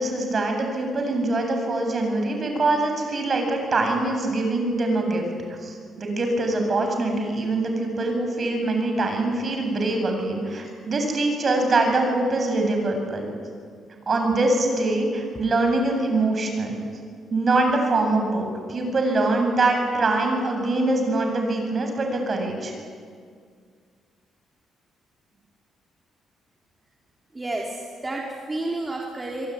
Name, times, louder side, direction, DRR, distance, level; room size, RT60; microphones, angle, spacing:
voice 1, 0.0-5.2 5.6-13.2 14.1-16.8 17.3-22.7, right 2 dB, 40° right, 4 dB, 7.9 m, -23 dB
voice 2, 27.3-29.5, right 2 dB, 20° right, -2 dB, 4.0 m, -30 dB
25.5 x 23.5 x 9.8 m, 2.1 s
cardioid pair, 90°, 0 cm